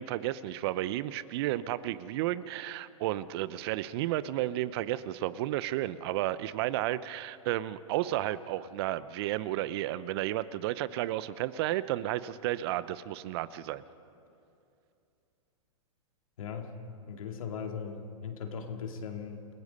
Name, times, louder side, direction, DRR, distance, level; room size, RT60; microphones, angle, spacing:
voice 1, 0.0-13.8, right 14 dB, 45° right, 16 dB, 0.7 m, -32 dB
voice 2, 16.4-16.7 17.1-19.5, left 6 dB, 75° left, 4 dB, 2.6 m, -38 dB
29.0 x 17.5 x 5.5 m, 2.6 s
hypercardioid pair, 125°, 18 cm